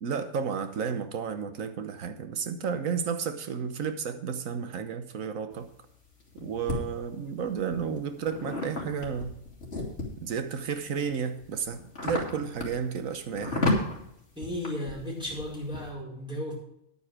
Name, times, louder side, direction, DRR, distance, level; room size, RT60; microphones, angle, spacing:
voice 1, 0.0-5.7 6.4-9.4 10.2-13.7, right 6 dB, 80° right, 1.4 m, -32 dB
sound 1, 5.5-6.8 7.5-10.3 10.9-15.9, left 2 dB, 50° left, 2.9 m, -33 dB
voice 2, 14.3-16.6, left 1 dB, 5° right, 4.7 m, -34 dB
10.0 x 9.1 x 4.9 m
omnidirectional pair, 1.4 m